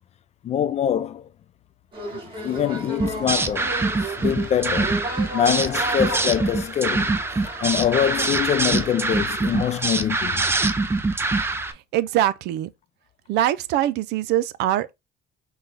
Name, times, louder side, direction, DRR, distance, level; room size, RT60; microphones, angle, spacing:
voice 1, 0.4-1.2 2.4-3.7 4.2-5.0 5.3-7.1 7.6-10.5, left 9 dB, 40° left, 0.4 m, -24 dB
sound 1, 1.9-9.1, right 1 dB, 30° right, 1.9 m, -35 dB
sound 2, 3.0-11.7, right 3 dB, 15° right, 0.5 m, -24 dB
voice 2, 11.7-12.7 13.3-14.9, right 12 dB, 80° right, 0.4 m, -23 dB
5.3 x 2.3 x 3.2 m
cardioid pair, 110°, 17 cm